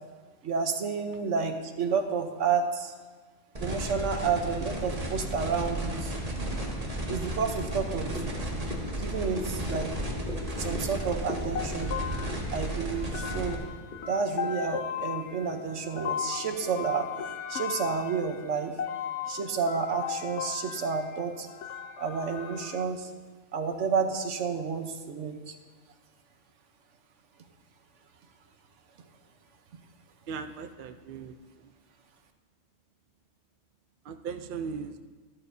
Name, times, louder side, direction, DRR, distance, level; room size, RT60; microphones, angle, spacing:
voice 1, 0.4-2.9 3.6-6.1 7.1-8.6 9.0-9.9 10.6-12.0 12.5-13.6 14.1-17.1 17.5-18.8 19.3-21.5 22.0-23.1 23.5-25.5, right 5 dB, 75° right, 6 dB, 1.2 m, -30 dB
sound 1, 3.6-13.6, right 1 dB, 30° right, 1.5 m, -34 dB
sound 2, 7.6-17.4, left 1 dB, 45° left, 1.2 m, -44 dB
sound 3, 11.5-22.8, left 8 dB, 75° left, 1.0 m, -37 dB
voice 2, 30.3-31.7 34.0-35.0, right 5 dB, 55° right, 8 dB, 0.6 m, -38 dB
13.0 x 13.0 x 2.7 m, 1.4 s
omnidirectional pair, 1.3 m